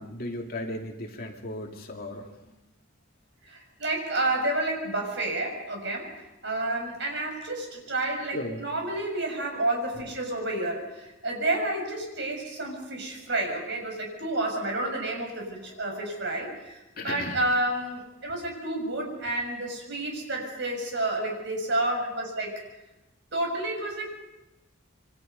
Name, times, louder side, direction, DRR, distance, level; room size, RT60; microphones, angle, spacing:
voice 1, 0.0-2.3 8.3-8.6 15.8-16.1 17.0-17.4 22.0-22.1, left 1 dB, 45° left, 1 dB, 2.9 m, -36 dB
voice 2, 3.4-22.6 23.3-24.1, right 2 dB, 55° right, 1 dB, 6.9 m, -30 dB
27.5 x 24.5 x 5.5 m, 1.0 s
head